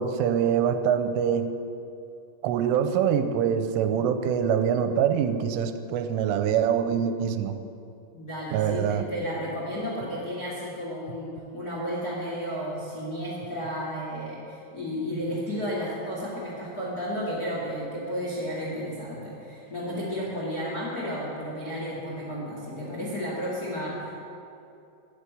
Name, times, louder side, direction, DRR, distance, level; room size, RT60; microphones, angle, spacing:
voice 1, 0.0-1.5 2.4-7.6 8.5-9.1, right 8 dB, 90° right, 8 dB, 3.2 m, -24 dB
voice 2, 8.1-24.2, equal, 90° left, -6 dB, 0.8 m, -33 dB
11.0 x 8.3 x 9.3 m, 2.7 s
omnidirectional pair, 5.7 m